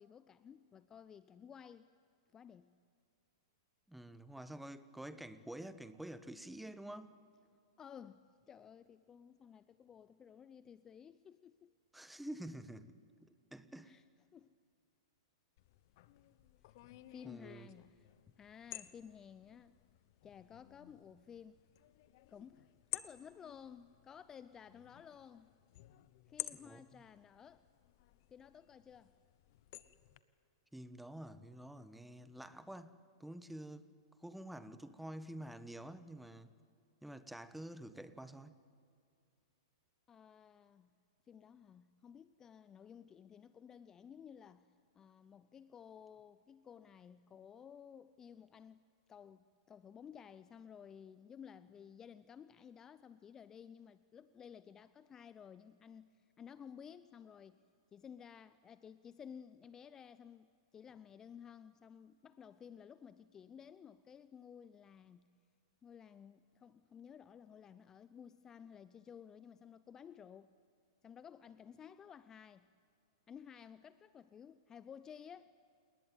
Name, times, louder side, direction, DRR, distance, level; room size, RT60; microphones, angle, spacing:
voice 1, 0.0-1.9 2.3-2.7 7.8-11.7 13.8-14.0 14.3-14.6 17.1-18.1 18.3-19.8 20.2-21.6 22.3-25.5 26.3-27.6 28.3-29.2 40.1-40.9 41.3-44.7 44.9-48.8 49.1-57.6 57.9-65.3 65.8-70.5 71.0-72.7 73.3-75.5, left 7 dB, 20° left, 0.6 m, -55 dB
voice 2, 3.9-7.1 11.9-14.0 17.2-17.7 26.6-27.0 30.7-33.9 34.2-36.5 37.0-38.5, right 1 dB, 5° right, 1.2 m, -49 dB
sound 1, 15.6-30.2, left 17 dB, 55° left, 1.1 m, -52 dB
29.0 x 19.5 x 9.4 m
hypercardioid pair, 110°, 2 cm